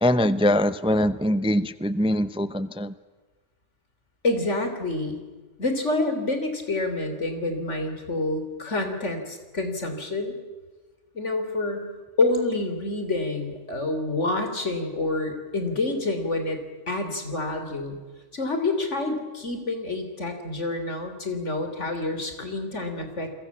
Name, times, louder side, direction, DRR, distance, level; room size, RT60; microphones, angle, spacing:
voice 1, 0.0-2.9, left 1 dB, 5° right, 14 dB, 0.5 m, -23 dB
voice 2, 4.2-5.2 5.6-10.4 11.1-11.9 12.2-18.0 18.3-23.3, left 2 dB, 80° left, 6 dB, 3.9 m, -28 dB
29.5 x 22.0 x 7.3 m, 1.3 s
omnidirectional pair, 1.2 m